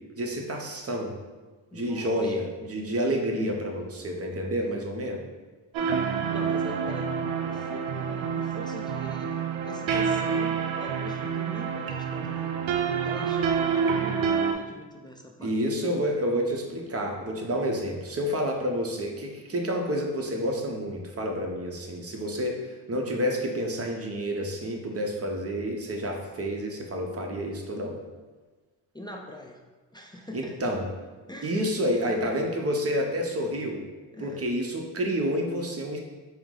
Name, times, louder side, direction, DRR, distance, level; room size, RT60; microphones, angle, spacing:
voice 1, 0.2-1.2 1.7-5.2 15.4-28.0 30.3-30.9 31.4-33.8 34.2-36.0, equal, 30° right, 1 dB, 0.7 m, -29 dB
voice 2, 1.7-2.4 5.8-7.1 7.4-12.5 13.0-15.8 28.9-29.6 29.9-30.7 31.3-31.6 32.0-32.3 34.1-34.5, left 1 dB, 10° left, 1 dB, 0.3 m, -43 dB
sound 1, 5.7-14.5, right 6 dB, 75° right, 0.5 m, -28 dB
4.5 x 2.0 x 3.7 m, 1.3 s
cardioid pair, 70°, 48 cm